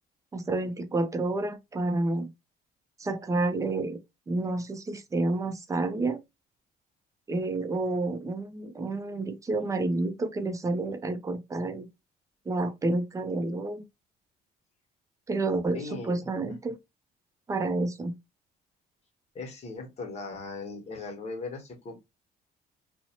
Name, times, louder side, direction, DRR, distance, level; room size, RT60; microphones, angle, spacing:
voice 1, 0.3-2.3 3.0-4.0 4.3-6.2 7.3-11.9 12.5-13.8 15.3-16.8 17.5-18.1, right 2 dB, 20° right, 0.5 m, -29 dB
voice 2, 15.7-16.6 19.3-22.0, left 3 dB, 40° left, 1.1 m, -39 dB
2.5 x 2.1 x 2.9 m
cardioid pair, 110°, 17 cm